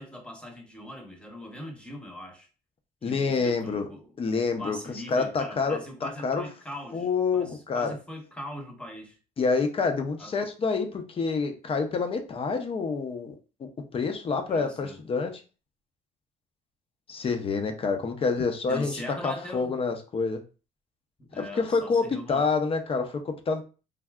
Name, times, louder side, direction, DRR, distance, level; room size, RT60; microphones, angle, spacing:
voice 1, 0.0-2.5 3.0-4.1 4.6-7.1 7.3-9.2 10.2-10.3 14.5-15.0 18.7-19.8 21.2-22.4, left 1 dB, 5° left, 2 dB, 0.9 m, -41 dB
voice 2, 3.0-3.9 4.2-4.8 5.1-6.5 6.9-8.0 9.4-13.3 13.6-15.4 17.1-18.9 19.2-20.4 21.4-23.6, left 4 dB, 35° left, 6 dB, 0.6 m, -27 dB
3.4 x 2.6 x 2.3 m, 0.34 s
cardioid pair, 110°, 17 cm